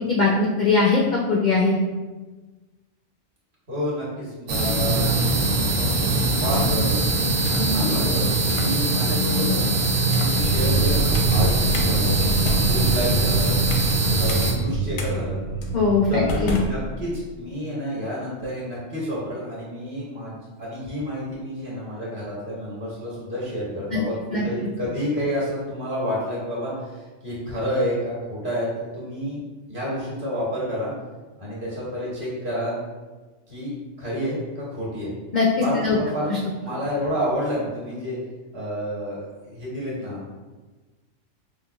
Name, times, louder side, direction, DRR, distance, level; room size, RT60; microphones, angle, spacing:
voice 1, 0.1-1.0 1.3-1.8 15.7-16.6 23.9-24.0 24.3-24.4 35.3-36.0 36.3-36.4, left 4 dB, 70° left, -3 dB, 0.4 m, -20 dB
voice 2, 3.7-5.3 5.8-7.0 7.6-8.2 8.5-9.7 10.1-12.2 12.6-13.6 14.2-15.4 16.1-29.4 29.7-30.9 31.4-32.8 33.5-33.7 34.0-35.1 35.6-36.3 36.6-38.2 38.5-40.2, equal, 45° right, -6 dB, 1.2 m, -29 dB
sound 1, 4.5-14.5, right 2 dB, 60° right, 0.6 m, -22 dB
sound 2, 6.3-6.9 7.4-7.7 8.4-8.7 9.3-9.6 10.1-10.4 11.1-11.4 11.7-11.9 12.3-14.0 14.3-14.4 15.0-15.1 15.6-15.8 16.3-17.3, left 2 dB, 85° left, 1.0 m, -32 dB
sound 3, 10.4-16.6, right 2 dB, 90° right, 1.2 m, -25 dB
5.0 x 2.2 x 2.3 m, 1.3 s
omnidirectional pair, 1.3 m